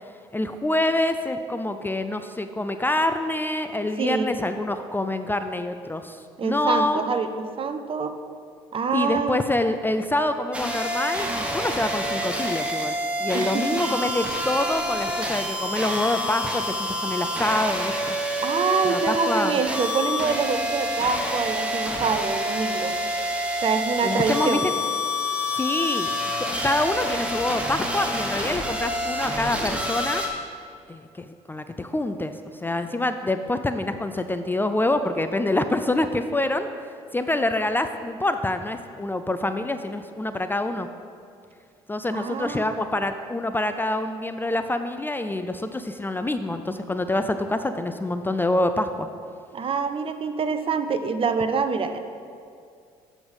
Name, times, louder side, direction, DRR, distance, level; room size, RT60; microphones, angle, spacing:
voice 1, 0.3-7.0 8.9-12.9 13.2-18.2 18.8-19.6 24.0-24.7 25.5-26.1 26.6-30.2 30.9-32.3 32.6-36.7 37.1-40.9 41.9-49.1, left 2 dB, 15° left, 9 dB, 0.4 m, -26 dB
voice 2, 4.0-4.3 6.4-8.1 8.7-9.4 13.3-13.7 18.4-23.0 23.6-24.7 42.1-42.7 49.5-52.0, right 5 dB, 40° right, 8 dB, 0.6 m, -26 dB
sound 1, 10.5-30.3, equal, 10° right, 1.3 m, -27 dB
7.8 x 5.1 x 5.5 m, 2.4 s
hypercardioid pair, 55°, 14 cm